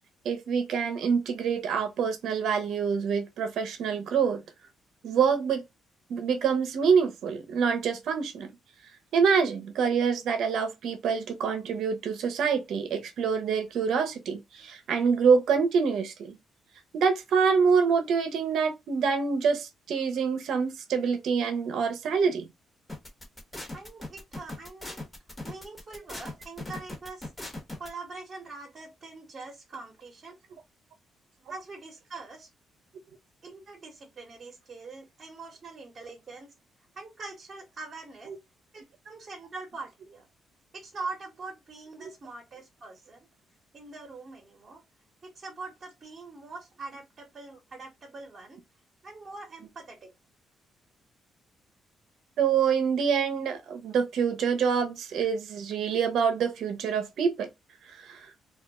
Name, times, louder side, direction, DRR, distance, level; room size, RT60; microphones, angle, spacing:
voice 1, 0.2-4.4 5.0-5.6 6.1-8.5 9.1-16.4 16.9-22.5 52.4-57.5 57.9-58.3, right 6 dB, 75° right, 0.6 m, -26 dB
sound 1, 22.9-27.9, left 2 dB, 15° left, 1.0 m, -39 dB
voice 2, 23.7-25.1 25.4-27.3 27.8-30.4 31.5-32.5 33.4-36.5 36.9-38.3 38.7-40.3 40.7-43.3 43.7-44.8 45.2-48.6 49.0-50.1, right 3 dB, 40° right, 0.9 m, -43 dB
2.3 x 2.0 x 3.5 m
cardioid pair, 90°, 0 cm